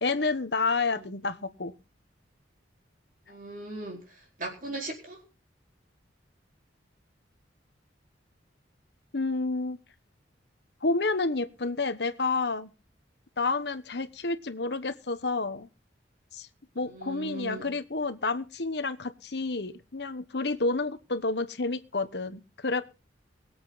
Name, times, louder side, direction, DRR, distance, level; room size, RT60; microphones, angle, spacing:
voice 1, 0.0-1.7 9.1-9.8 10.8-12.7 13.4-15.7 16.3-16.5 16.7-22.8, left 3 dB, 60° left, 11 dB, 1.1 m, -29 dB
voice 2, 3.3-4.0 4.4-5.2 16.7-17.7, right 2 dB, 45° right, 1 dB, 4.5 m, -38 dB
23.0 x 8.1 x 4.0 m, 0.32 s
head